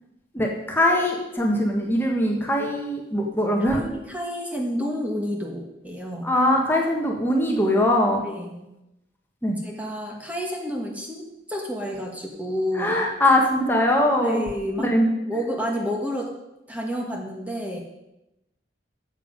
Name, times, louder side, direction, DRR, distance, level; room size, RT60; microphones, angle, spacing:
voice 1, 0.3-3.8 6.2-8.2 9.4-9.6 12.7-14.4 14.8-15.1, left 1 dB, 10° left, 0 dB, 1.4 m, -21 dB
voice 2, 3.6-6.3 8.2-8.7 9.6-11.2 11.5-13.0 14.2-14.9 15.3-16.3 16.7-17.8, equal, 10° right, 0 dB, 1.4 m, -30 dB
12.5 x 7.4 x 5.1 m, 0.92 s
head